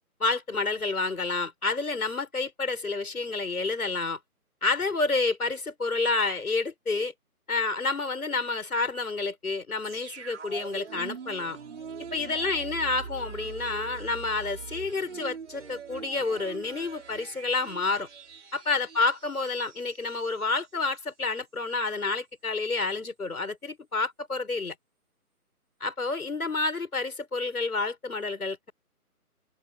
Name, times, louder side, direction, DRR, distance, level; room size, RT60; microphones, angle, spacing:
voice 1, 0.2-4.2 4.6-7.1 7.5-11.6 12.1-18.1 18.5-24.7 25.8-28.7, left 3 dB, 70° left, 6.3 m, -29 dB
sound 1, 9.8-20.7 21.0-21.1, right 5 dB, 50° right, 6.2 m, -43 dB
open air
figure-of-eight pair, 145°, 46 cm